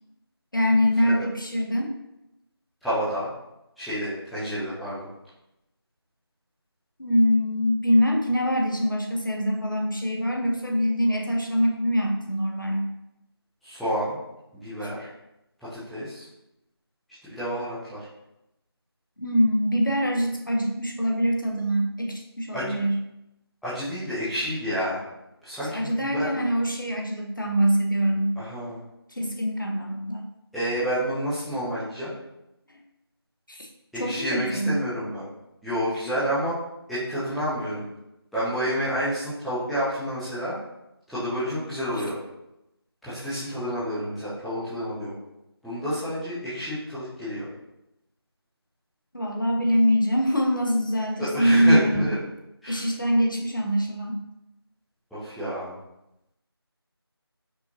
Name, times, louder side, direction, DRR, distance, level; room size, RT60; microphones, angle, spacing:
voice 1, 0.5-1.9 7.0-12.9 14.8-14.9 19.2-23.0 25.7-28.4 29.1-30.3 32.7-32.8 33.5-33.7 34.0-34.8 49.1-52.1 52.7-54.2, equal, 50° left, 1 dB, 0.7 m, -24 dB
voice 2, 2.8-3.3 3.8-5.1 13.6-14.2 14.6-15.1 15.7-16.2 17.3-18.0 22.5-22.7 23.6-25.0 25.4-26.3 28.4-28.8 30.5-32.1 33.9-35.3 35.6-36.6 36.9-37.9 38.3-40.6 41.1-42.2 43.0-45.2 45.6-47.5 51.2-52.2 52.6-52.8 55.1-55.7, equal, ahead, -16 dB, 0.5 m, -29 dB
5.5 x 2.5 x 2.7 m, 0.88 s
figure-of-eight pair, 180°, 14 cm